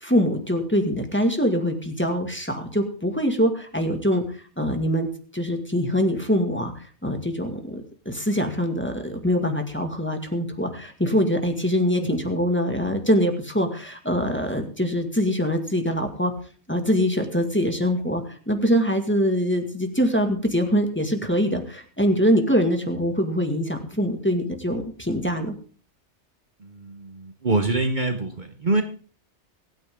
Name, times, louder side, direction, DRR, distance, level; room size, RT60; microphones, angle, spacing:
voice 1, 0.0-4.2 4.6-6.7 7.0-16.3 16.7-25.5, equal, 10° left, 4 dB, 1.9 m, -23 dB
voice 2, 26.6-28.8, right 2 dB, 45° right, 6 dB, 1.1 m, -25 dB
24.5 x 9.3 x 3.7 m, 0.41 s
omnidirectional pair, 1.2 m